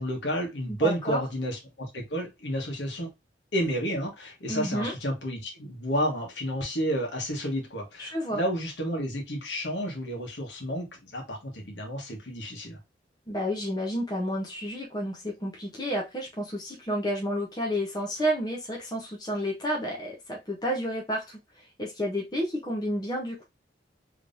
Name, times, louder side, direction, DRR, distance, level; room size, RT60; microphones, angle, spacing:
voice 1, 0.0-3.1 3.5-12.8, equal, 75° left, 1.3 m, -31 dB
voice 2, 0.7-1.2 4.5-4.9 8.0-8.4 13.3-23.4, equal, 20° left, 0.8 m, -31 dB
3.5 x 3.1 x 2.6 m
head